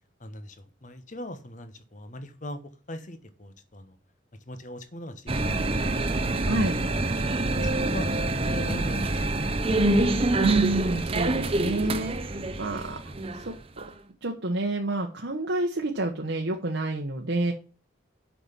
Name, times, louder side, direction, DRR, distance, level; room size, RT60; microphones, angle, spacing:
voice 1, 0.2-2.6 2.9-4.0 4.5-6.4 6.8-7.2 7.5-9.7, left 1 dB, 40° left, 10 dB, 1.1 m, -41 dB
sound 1, 5.3-13.9, right 2 dB, 30° right, 0.7 m, -26 dB
voice 2, 6.4-6.8 10.4-13.0 13.4-13.8 14.2-17.5, right 2 dB, 65° right, 1 dB, 1.1 m, -28 dB
7.1 x 6.0 x 7.3 m, 0.36 s
head